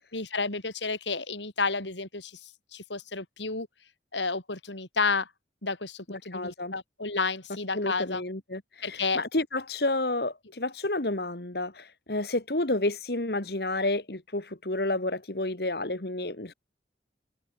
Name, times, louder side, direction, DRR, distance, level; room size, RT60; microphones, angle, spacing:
voice 1, 0.1-3.7 4.1-5.3 5.6-8.2 8.8-9.2, left 4 dB, 85° left, 4.8 m, -31 dB
voice 2, 6.3-6.7 7.7-16.5, left 2 dB, 60° left, 2.1 m, -30 dB
open air
head